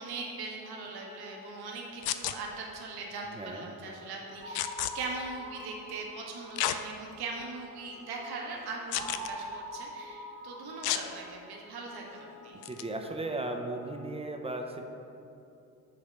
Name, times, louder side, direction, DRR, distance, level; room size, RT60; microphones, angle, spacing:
voice 1, 0.0-12.6, right 3 dB, 55° right, -1 dB, 1.2 m, -40 dB
Wind instrument woodwind instrument, 0.6-14.1, left 4 dB, 70° left, 1.6 m, -54 dB
sound 1, 2.0-2.4 4.5-4.9 6.6-6.8 7.4-7.5 8.9-9.3 10.8-11.0 12.6-12.8, left 13 dB, 55° left, 0.5 m, -31 dB
voice 2, 3.3-3.7 12.5-14.8, right 2 dB, 15° right, 4 dB, 0.7 m, -36 dB
sound 2, 4.4-7.3 9.0-11.8, right 1 dB, 85° right, 1.2 m, -44 dB
6.4 x 4.1 x 6.0 m, 2.6 s
hypercardioid pair, 50°, 47 cm